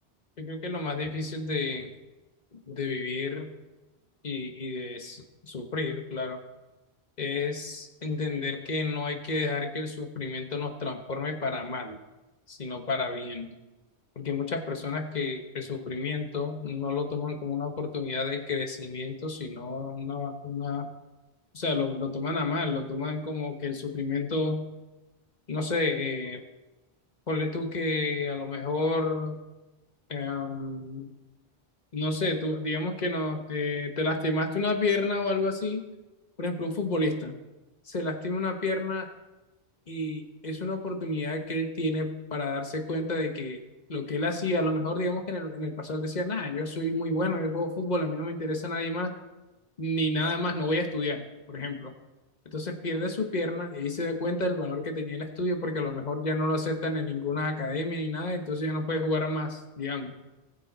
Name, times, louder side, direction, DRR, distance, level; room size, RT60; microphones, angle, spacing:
voice 1, 0.4-1.9 2.5-3.5 4.2-6.4 7.2-12.0 12.5-13.5 14.2-20.9 21.5-24.6 25.5-26.4 27.3-29.4 30.1-31.1 31.9-35.8 36.4-37.3 37.9-39.1 39.9-43.6 43.9-49.1 49.8-51.9 52.4-60.1, left 2 dB, 40° left, 4 dB, 1.3 m, -30 dB
20.0 x 7.1 x 4.1 m, 1.1 s
omnidirectional pair, 1.1 m